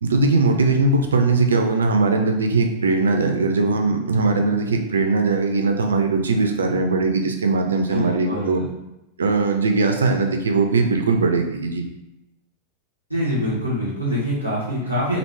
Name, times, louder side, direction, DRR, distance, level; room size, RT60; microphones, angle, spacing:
voice 1, 0.0-8.6 9.2-11.8, right 3 dB, 70° right, 4 dB, 0.4 m, -20 dB
voice 2, 7.9-8.7 13.1-15.2, equal, 90° left, -8 dB, 1.3 m, -24 dB
2.9 x 2.5 x 3.2 m, 0.90 s
figure-of-eight pair, 90°, 0 cm